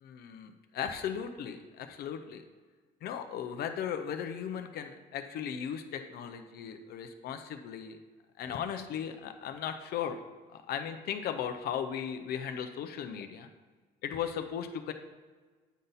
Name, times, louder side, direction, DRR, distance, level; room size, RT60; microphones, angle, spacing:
voice 1, 0.0-2.4 3.0-8.0 8.4-10.2 10.5-13.5 14.0-14.9, left 8 dB, 70° left, 7 dB, 0.6 m, -37 dB
9.2 x 3.9 x 4.0 m, 1.4 s
cardioid pair, 110°, 17 cm